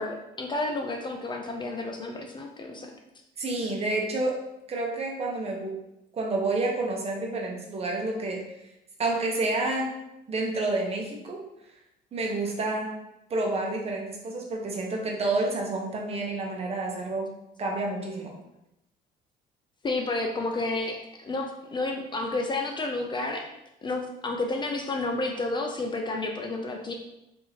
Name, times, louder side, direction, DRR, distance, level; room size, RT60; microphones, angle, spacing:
voice 1, 0.0-2.9 19.8-23.5 23.8-26.9, left 2 dB, 25° left, 2 dB, 0.4 m, -31 dB
voice 2, 3.4-4.4 4.7-5.7 6.1-8.4 9.0-9.9 10.3-11.4 12.1-13.0 13.3-17.3 17.6-18.3, right 2 dB, 35° right, 0 dB, 0.9 m, -29 dB
4.7 x 2.8 x 2.8 m, 0.87 s
cardioid pair, 110°, 17 cm